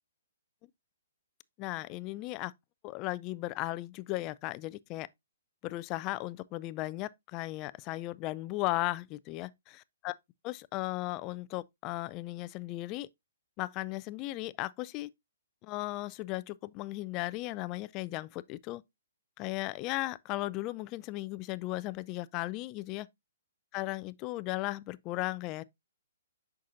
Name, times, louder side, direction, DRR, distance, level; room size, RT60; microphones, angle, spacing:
voice 1, 1.6-2.5 2.8-5.1 5.6-9.5 10.0-10.1 10.4-13.1 13.6-15.1 15.6-18.8 19.4-23.1 23.7-25.6, left 18 dB, 25° left, 0.4 m, -36 dB
7.5 x 5.9 x 2.5 m
hypercardioid pair, 155°, 0 cm